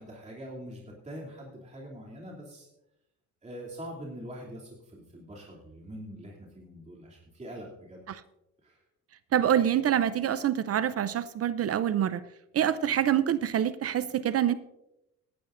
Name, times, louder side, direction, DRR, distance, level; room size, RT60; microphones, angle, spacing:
voice 1, 0.0-2.7 3.4-8.0 8.6-8.8, equal, 25° right, -4 dB, 2.9 m, -43 dB
voice 2, 9.3-12.2 12.5-14.5, right 10 dB, 50° right, 15 dB, 0.6 m, -26 dB
17.0 x 11.5 x 2.6 m, 0.89 s
cardioid pair, 90°, 30 cm